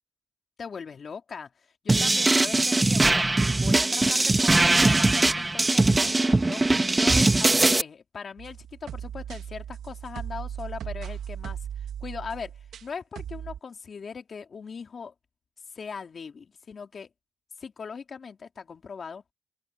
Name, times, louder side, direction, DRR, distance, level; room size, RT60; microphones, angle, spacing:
voice 1, 0.6-1.5 1.8-3.2 3.6-6.6 6.9-11.6 12.0-12.5 12.8-15.1 15.7-17.1 17.6-19.2, left 5 dB, 55° left, 2.8 m, -39 dB
sound 1, 1.9-7.8, right 2 dB, 25° right, 1.4 m, -21 dB
trap intro and main beat, 8.4-12.9 13.2-13.6, right 9 dB, 80° right, 2.6 m, -37 dB
open air
cardioid pair, 70°, 0 cm